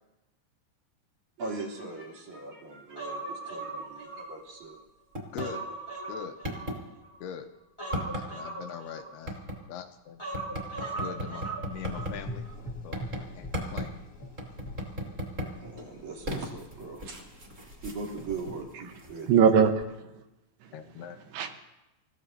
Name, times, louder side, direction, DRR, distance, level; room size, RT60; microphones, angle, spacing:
voice 1, 1.4-4.8 15.6-17.5 17.8-19.3, right 3 dB, 45° right, 0 dB, 4.2 m, -40 dB
Human voice, 3.0-4.7 5.1-7.1 7.8-9.5 10.2-12.1 12.4-12.5, right 2 dB, 10° left, 1.5 m, -39 dB
sound 1, 5.1-5.5 5.9-6.0 6.4-6.8 7.9-8.3 9.3-9.6 10.3-12.1 12.9-13.2 13.5-13.9 14.4-15.5 15.8-19.5 19.8-19.9, equal, 20° right, 3.4 m, -36 dB
voice 2, 5.3-5.7 6.1-6.4 7.2-7.5 8.1-9.4 9.7-10.2 11.0-12.5 12.8-13.1 13.3-13.9 20.7-21.2, left 8 dB, 80° left, 6 dB, 2.6 m, -42 dB
Gurgling / Engine, 11.7-18.4, left 1 dB, 60° left, 0.9 m, -44 dB
voice 3, 19.3-20.3 20.6-21.6, right 7 dB, 75° right, 5 dB, 3.1 m, -25 dB
29.5 x 16.0 x 2.8 m, 0.97 s
omnidirectional pair, 4.9 m